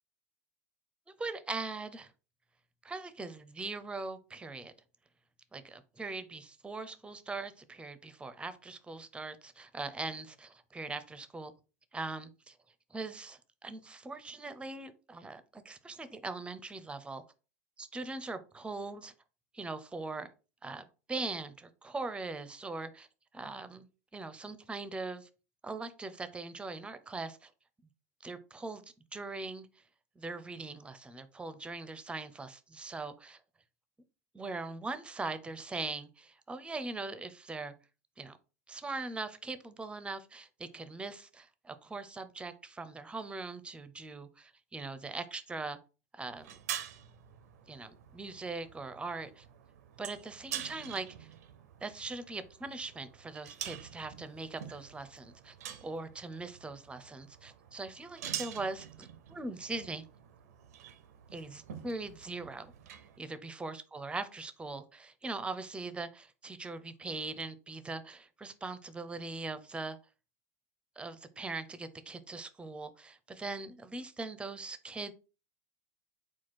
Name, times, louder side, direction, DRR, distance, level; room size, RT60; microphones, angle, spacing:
voice 1, 1.2-2.1 2.8-4.7 5.5-11.5 11.9-12.6 12.9-17.2 17.8-19.1 19.5-20.3 20.6-23.1 23.3-25.3 25.6-27.5 28.2-28.8 29.1-29.7 30.2-33.4 34.3-37.7 38.2-38.4 38.7-45.8 46.1-46.6 47.7-49.5 50.0-51.3 51.8-55.6 55.8-60.0 61.3-62.7 63.2-70.0 71.0-75.1, right 3 dB, 10° right, 0.6 m, -41 dB
sound 1, 46.3-63.2, right 10 dB, 75° right, 0.5 m, -46 dB
4.3 x 2.3 x 4.2 m
hypercardioid pair, 90°, 9 cm